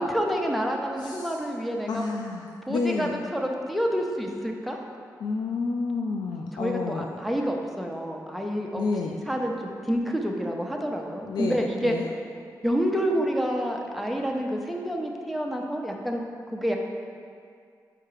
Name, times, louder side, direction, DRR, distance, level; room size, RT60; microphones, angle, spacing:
voice 1, 0.0-2.0 2.7-4.8 6.6-8.8 9.3-11.9 12.6-16.2 16.5-16.8, equal, ahead, 1 dB, 0.6 m, -28 dB
voice 2, 1.0-1.4 1.9-3.2 5.2-7.1 8.8-9.1 11.2-12.1, left 4 dB, 85° left, 0 dB, 0.4 m, -30 dB
4.9 x 4.4 x 4.7 m, 2.2 s
cardioid pair, 95°, 7 cm